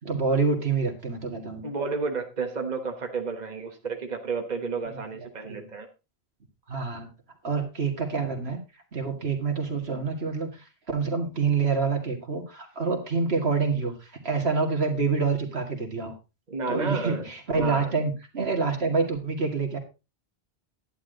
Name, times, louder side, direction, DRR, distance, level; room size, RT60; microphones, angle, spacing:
voice 1, 0.0-1.7 4.9-5.0 5.5-5.7 6.7-7.1 7.4-8.6 8.9-16.1 16.7-19.8, right 4 dB, 80° right, 4 dB, 2.4 m, -27 dB
voice 2, 1.6-5.9 16.5-17.3 17.6-17.9, right 4 dB, 45° right, 4 dB, 1.5 m, -31 dB
11.0 x 9.8 x 3.9 m, 0.28 s
omnidirectional pair, 1.0 m